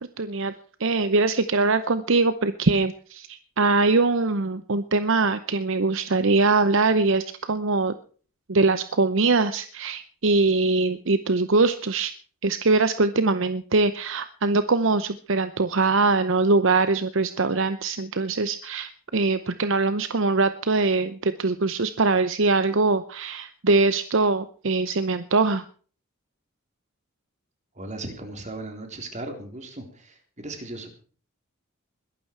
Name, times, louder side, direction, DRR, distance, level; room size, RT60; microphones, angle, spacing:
voice 1, 0.2-0.5 0.8-7.9 8.5-12.1 12.4-25.6, right 3 dB, 60° right, 12 dB, 0.8 m, -22 dB
voice 2, 27.8-30.9, right 2 dB, 35° right, 4 dB, 3.7 m, -37 dB
21.5 x 12.0 x 4.6 m, 0.42 s
head